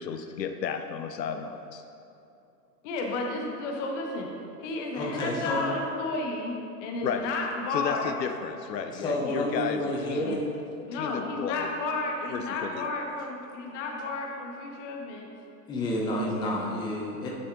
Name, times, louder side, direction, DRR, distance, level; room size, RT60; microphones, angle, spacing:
voice 1, 0.0-1.8 7.0-7.3 7.7-9.8 10.1-10.4 10.9-11.7 12.3-12.9, left 7 dB, 90° left, 7 dB, 0.6 m, -33 dB
voice 2, 2.8-4.3 4.6-8.1 9.2-9.4 10.2-10.4 10.9-15.3, left 3 dB, 50° left, 1 dB, 1.2 m, -32 dB
voice 3, 4.9-5.7 8.9-10.4 15.7-17.3, left 1 dB, 10° left, -3 dB, 0.5 m, -30 dB
9.5 x 6.4 x 2.5 m, 2.7 s
hypercardioid pair, 110°, 48 cm